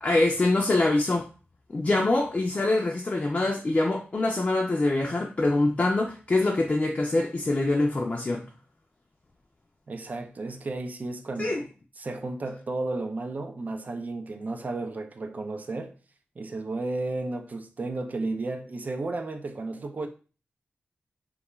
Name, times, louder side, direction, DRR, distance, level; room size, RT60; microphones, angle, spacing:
voice 1, 0.0-1.2 1.7-8.4 11.4-11.6, left 2 dB, 35° left, 0.4 m, -24 dB
voice 2, 9.9-11.7 12.0-16.0 16.4-20.1, right 2 dB, 45° right, 0.4 m, -33 dB
2.3 x 2.2 x 3.0 m
wide cardioid pair, 95°, 4 cm